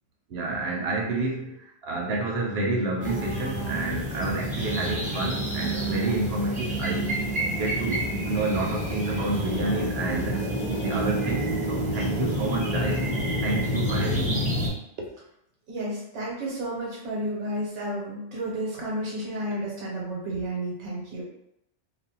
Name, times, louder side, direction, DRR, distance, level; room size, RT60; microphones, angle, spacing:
voice 1, 0.3-7.2 7.5-10.4 10.8-13.0 13.4-14.5, right 2 dB, 70° right, 0 dB, 0.8 m, -29 dB
sound 1, 3.0-14.7, right 1 dB, 10° right, 0.6 m, -28 dB
voice 2, 15.7-21.2, right 1 dB, 85° right, -4 dB, 1.1 m, -31 dB
2.5 x 2.0 x 2.8 m, 0.80 s
omnidirectional pair, 1.2 m